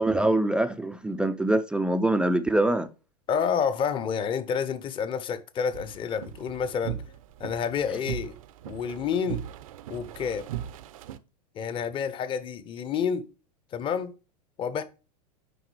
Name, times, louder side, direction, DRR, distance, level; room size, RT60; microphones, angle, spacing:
voice 1, 0.0-2.9, right 1 dB, 5° right, 0.3 m, -24 dB
voice 2, 3.3-7.0 7.4-8.4 8.7-9.5 9.9-10.5 11.5-13.3 13.7-14.1 14.6-14.8, left 7 dB, 25° left, 0.7 m, -29 dB
sound 1, 5.7-11.2, right 12 dB, 55° right, 0.6 m, -39 dB
10.0 x 3.9 x 3.1 m
figure-of-eight pair, 90°, 21 cm